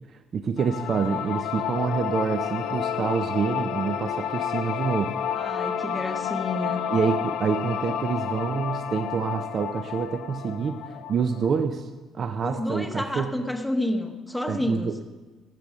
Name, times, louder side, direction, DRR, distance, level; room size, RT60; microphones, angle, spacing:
voice 1, 0.3-5.1 5.4-5.5 6.9-11.9 12.1-13.3 14.5-15.1, right 6 dB, 35° right, 6 dB, 0.6 m, -27 dB
sound 1, 0.6-11.6, left 9 dB, 75° left, 0.6 m, -30 dB
voice 2, 5.4-6.8 12.4-14.9, left 1 dB, 5° left, 5 dB, 1.0 m, -29 dB
15.5 x 8.4 x 6.3 m, 1.3 s
cardioid pair, 165°, 0 cm